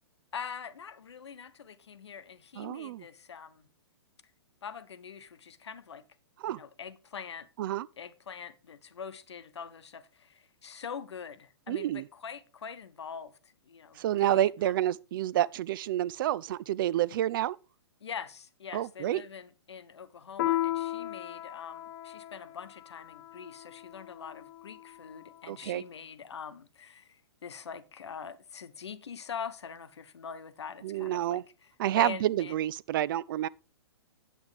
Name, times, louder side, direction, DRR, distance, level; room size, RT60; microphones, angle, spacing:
voice 1, 0.3-3.7 4.6-6.0 6.5-7.5 8.0-14.7 18.0-31.4 31.9-32.5, left 6 dB, 80° left, 1.0 m, -44 dB
voice 2, 2.6-3.0 6.4-6.6 7.6-7.9 11.7-12.1 13.9-17.6 18.7-19.2 25.5-25.8 30.8-31.4 31.8-33.5, right 13 dB, 50° right, 0.4 m, -29 dB
Piano, 20.4-25.3, left 14 dB, 50° left, 0.8 m, -36 dB
8.4 x 8.2 x 3.4 m
hypercardioid pair, 130°, 14 cm